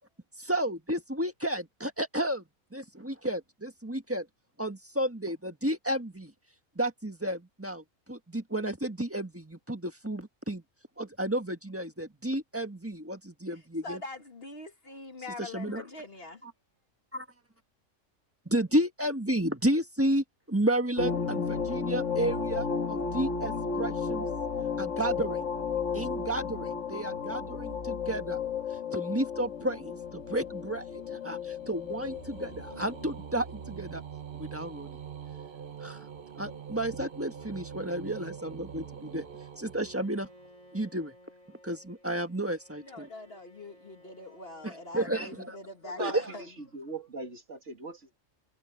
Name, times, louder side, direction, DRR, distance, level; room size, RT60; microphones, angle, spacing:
voice 1, 0.4-2.4 2.7-4.3 4.6-6.3 6.7-10.6 11.0-14.0 15.4-15.8 16.4-16.5 17.1-17.2 18.4-24.3 24.8-25.4 25.9-28.4 28.9-34.0 34.4-35.0 35.8-36.1 36.4-39.3 39.6-40.3 40.7-41.1 41.6-43.1 44.6-45.6 46.0-46.3, right 1 dB, 10° right, 1.5 m, -32 dB
voice 2, 13.8-16.4 42.8-46.5, left 2 dB, 50° left, 2.0 m, -43 dB
sound 1, 21.0-33.1, left 5 dB, 70° left, 2.0 m, -33 dB
sound 2, 29.8-40.7, right 7 dB, 45° right, 1.1 m, -45 dB
Bowed string instrument, 39.8-46.1, left 1 dB, 85° left, 8.6 m, -58 dB
voice 3, 45.8-46.5 46.7-48.2, right 3 dB, 60° right, 2.9 m, -39 dB
omnidirectional pair, 1.4 m